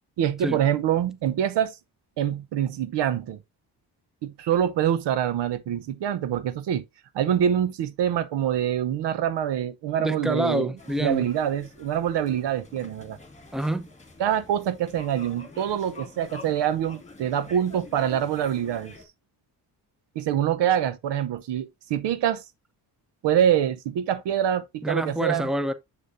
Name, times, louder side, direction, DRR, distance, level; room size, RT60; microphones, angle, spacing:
voice 1, 0.2-1.7 2.2-3.4 4.2-6.8 7.1-10.7 11.0-13.2 14.2-18.9 20.1-22.4 23.2-25.5, right 10 dB, 85° right, 0.9 m, -25 dB
voice 2, 10.0-11.3 13.5-13.9 24.8-25.7, right 1 dB, ahead, 0.7 m, -27 dB
sound 1, 10.8-19.1, left 3 dB, 15° left, 1.9 m, -47 dB
7.1 x 6.7 x 2.6 m
cardioid pair, 105°, 41 cm